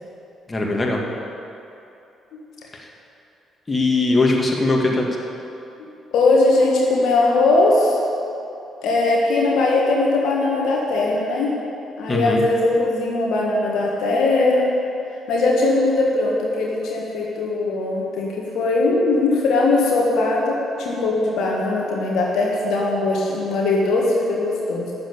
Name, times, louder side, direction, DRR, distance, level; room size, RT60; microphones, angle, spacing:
voice 1, 0.5-1.0 3.7-5.1 12.1-12.4, left 2 dB, 25° left, -1 dB, 2.3 m, -20 dB
voice 2, 5.8-8.0 8.8-11.5 12.0-14.7 15.3-24.9, left 2 dB, 60° left, -2 dB, 1.6 m, -20 dB
13.0 x 7.5 x 8.6 m, 2.8 s
figure-of-eight pair, 40°, 0 cm